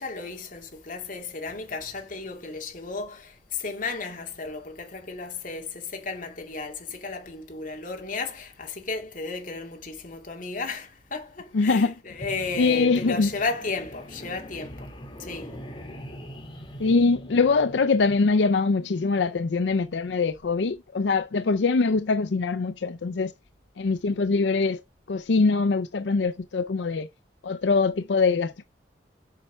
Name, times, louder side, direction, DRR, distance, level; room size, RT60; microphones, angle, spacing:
voice 1, 0.0-14.9 15.2-15.6, left 4 dB, 50° left, 2.3 m, -34 dB
voice 2, 11.5-11.9 12.6-13.3 16.8-23.3 23.8-24.8 25.1-27.1 27.4-28.6, left 4 dB, 90° left, 0.5 m, -23 dB
sound 1, 12.1-18.3, equal, 30° left, 2.6 m, -42 dB
7.3 x 5.5 x 5.5 m
head